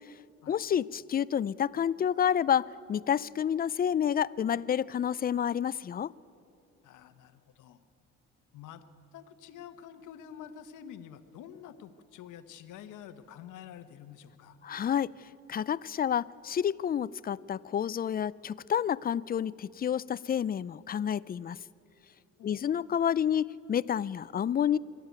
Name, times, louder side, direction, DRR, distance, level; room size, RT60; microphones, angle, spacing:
voice 1, 0.5-6.1 14.6-15.1 15.5-21.6 22.4-24.8, left 9 dB, 30° left, 19 dB, 0.4 m, -29 dB
voice 2, 6.8-7.8 8.5-8.8 9.1-14.6 22.4-22.7, left 9 dB, 85° left, 10 dB, 1.1 m, -48 dB
25.0 x 12.0 x 9.4 m, 2.6 s
cardioid pair, 90°, 30 cm